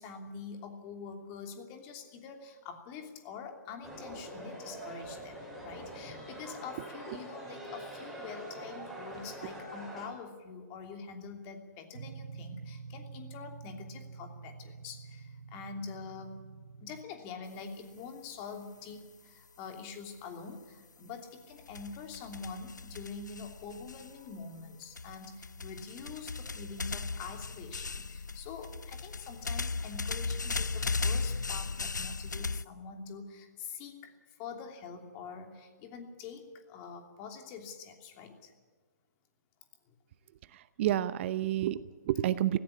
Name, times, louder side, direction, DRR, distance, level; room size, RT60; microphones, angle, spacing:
voice 1, 0.0-16.4 16.8-38.5 39.9-40.0, left 5 dB, 30° left, 5 dB, 3.0 m, -45 dB
sound 1, 3.8-10.1, right 1 dB, ahead, 6.8 m, -44 dB
sound 2, 11.9-17.0, right 5 dB, 65° right, 1.2 m, -47 dB
sound 3, 21.6-24.4 24.9-32.6, left 4 dB, 90° left, 0.5 m, -36 dB
voice 2, 40.5-42.6, right 12 dB, 40° right, 16 dB, 0.7 m, -30 dB
17.5 x 16.0 x 9.9 m, 1.5 s
figure-of-eight pair, 130°, 10 cm